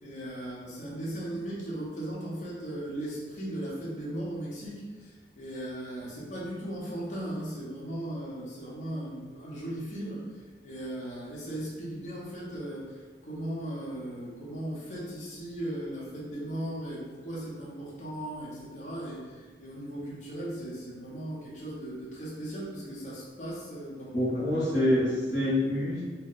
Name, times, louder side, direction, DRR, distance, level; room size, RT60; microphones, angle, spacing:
voice 1, 0.0-24.1, right 1 dB, 45° left, -6 dB, 0.7 m, -37 dB
voice 2, 24.1-26.0, left 1 dB, 80° left, -8 dB, 1.3 m, -26 dB
2.7 x 2.1 x 3.9 m, 1.4 s
head